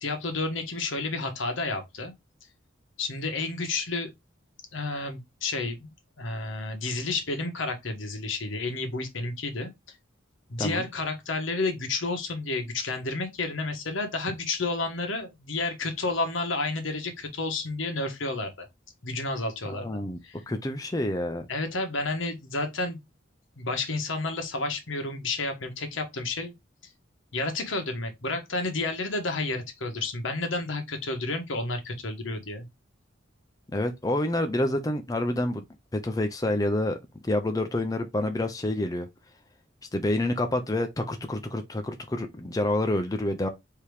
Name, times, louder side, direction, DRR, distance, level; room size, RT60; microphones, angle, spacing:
voice 1, 0.0-2.1 3.0-4.1 4.7-5.9 6.2-9.7 10.5-18.7 19.0-20.4 21.5-23.0 23.6-26.5 26.8-26.9 27.3-32.7, left 3 dB, 80° left, 1.2 m, -31 dB
voice 2, 19.7-20.2 20.5-21.5 33.7-35.6 35.9-39.1 39.9-43.5, left 1 dB, 20° left, 0.5 m, -28 dB
4.7 x 2.9 x 3.3 m
head